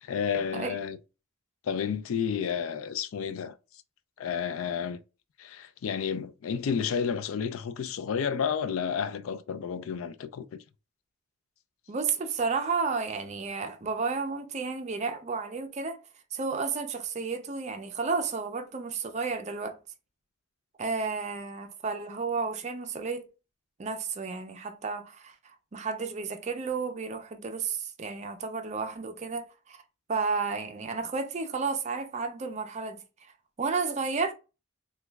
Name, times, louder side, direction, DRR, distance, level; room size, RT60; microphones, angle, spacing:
voice 1, 0.0-1.0 1.6-3.5 4.2-5.0 5.4-10.6, left 7 dB, 75° left, 0.3 m, -31 dB
voice 2, 11.9-16.0 16.3-19.8 20.8-23.2 23.8-25.3 25.7-29.8 30.1-33.0 33.6-34.3, right 4 dB, 35° right, 0.4 m, -32 dB
3.0 x 2.3 x 3.3 m
head